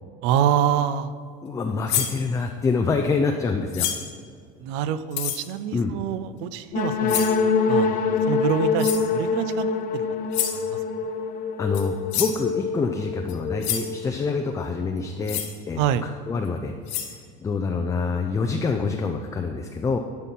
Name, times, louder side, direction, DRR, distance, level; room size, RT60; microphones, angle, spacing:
voice 1, 0.2-1.1 4.6-7.3 7.7-9.7 9.9-10.0 10.7-10.8 15.8-16.1, right 9 dB, 75° right, 14 dB, 0.5 m, -26 dB
voice 2, 1.4-3.9 5.7-5.9 11.6-15.8 16.3-16.7 17.1-20.0, left 4 dB, 15° left, 4 dB, 0.4 m, -26 dB
sound 1, 1.9-2.2 3.7-4.1 5.1-5.4 7.1-7.4 8.8-9.1 10.3-10.6 11.7-11.8 12.1-12.4 13.3-13.4 13.6-13.9 15.2-15.5 16.4-16.5 16.9-17.1, left 10 dB, 70° left, 1.2 m, -27 dB
sound 2, 6.7-14.4, left 5 dB, 45° left, 0.7 m, -25 dB
11.0 x 4.3 x 5.4 m, 2.2 s
cardioid pair, 135°, 20 cm